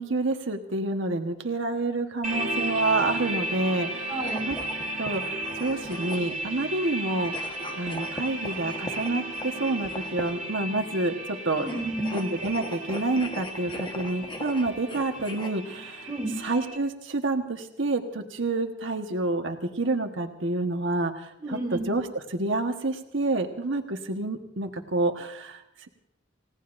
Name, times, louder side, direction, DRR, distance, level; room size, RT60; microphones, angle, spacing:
voice 1, 0.0-4.1 4.5-4.6 5.0-7.5 7.8-11.7 12.1-16.1 16.4-25.9, right 2 dB, 75° right, 4 dB, 1.3 m, -28 dB
sound 1, 2.2-16.8, right 1 dB, 40° right, 2.5 m, -34 dB
voice 2, 4.1-4.5 11.5-12.2 16.1-16.4 21.4-22.0, right 1 dB, 15° right, 0 dB, 2.2 m, -31 dB
sound 2, 4.2-6.5 7.2-10.5 11.6-15.5, left 1 dB, 25° left, 1.3 m, -40 dB
29.5 x 17.5 x 2.6 m, 0.85 s
head